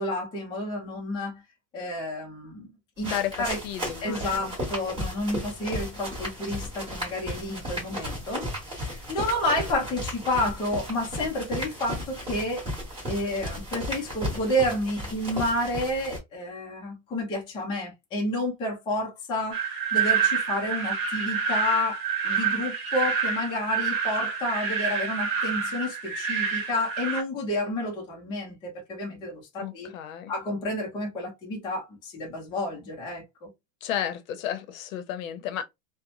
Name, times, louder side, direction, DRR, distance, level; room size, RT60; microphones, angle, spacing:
voice 1, 0.0-1.4 1.7-2.7 3.0-3.1 3.4-3.6 4.0-12.6 13.0-29.9 30.3-33.5, left 1 dB, 10° left, 0.5 m, -30 dB
voice 2, 3.0-4.6 29.6-30.3 33.8-35.6, left 10 dB, 70° left, 0.7 m, -33 dB
sound 1, 3.0-16.2, equal, 15° right, 1.4 m, -35 dB
sound 2, 19.5-27.2, right 6 dB, 45° right, 1.1 m, -27 dB
2.9 x 2.1 x 2.5 m
supercardioid pair, 160°, 42 cm